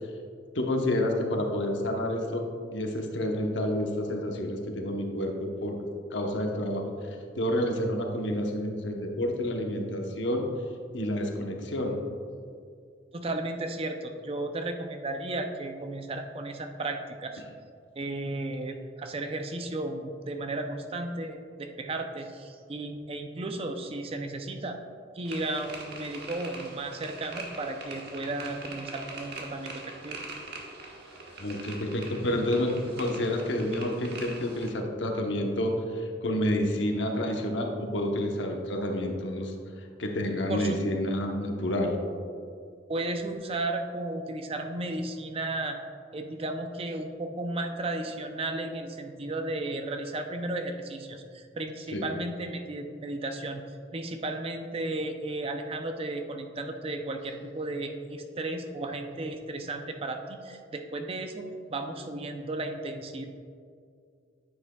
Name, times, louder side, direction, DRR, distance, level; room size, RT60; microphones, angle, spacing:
voice 1, 0.5-2.5 2.7-5.8 6.1-6.9 7.4-10.5 10.9-12.0 31.4-39.5 40.0-42.0 51.9-52.1, left 1 dB, 75° left, 2 dB, 0.9 m, -29 dB
voice 2, 13.1-17.4 18.0-24.8 25.1-30.2 40.5-40.8 42.9-45.8 46.1-53.6 53.9-61.4 61.7-63.2, right 2 dB, 30° right, 5 dB, 0.5 m, -34 dB
sound 1, 25.3-34.7, right 3 dB, 60° right, 1.3 m, -43 dB
9.6 x 7.7 x 2.3 m, 2.3 s
head